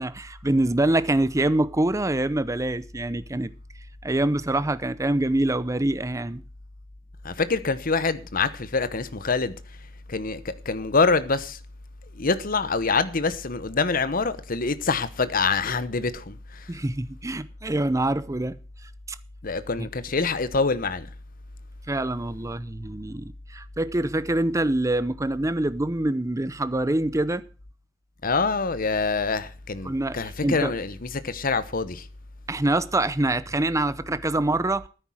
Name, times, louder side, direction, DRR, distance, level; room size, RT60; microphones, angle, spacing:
voice 1, 0.0-3.5 4.0-6.4 16.7-18.6 19.8-19.9 21.9-27.5 29.9-30.2 30.4-30.7 32.5-34.9, right 1 dB, 15° right, 0.6 m, -25 dB
voice 2, 7.2-9.5 10.1-11.6 12.1-16.7 19.4-21.1 28.2-32.1, left 4 dB, 45° left, 1.0 m, -25 dB
12.5 x 9.8 x 6.3 m
head